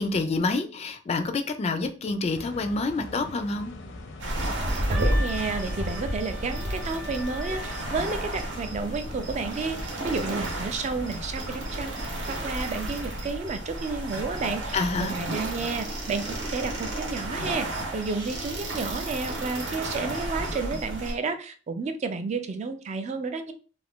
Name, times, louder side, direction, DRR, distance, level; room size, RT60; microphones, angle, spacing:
voice 1, 0.0-3.7 14.7-15.1, left 3 dB, 35° left, 0.3 m, -27 dB
sound 1, 2.3-13.3, left 2 dB, 85° left, 0.6 m, -42 dB
sound 2, 4.2-21.1, right 1 dB, 90° right, 1.0 m, -32 dB
voice 2, 4.9-9.8 10.0-17.7 17.9-23.5, right 4 dB, 40° right, 0.4 m, -31 dB
Wind instrument woodwind instrument, 4.9-8.7, left 1 dB, 75° right, 0.7 m, -41 dB
2.6 x 2.4 x 3.5 m
head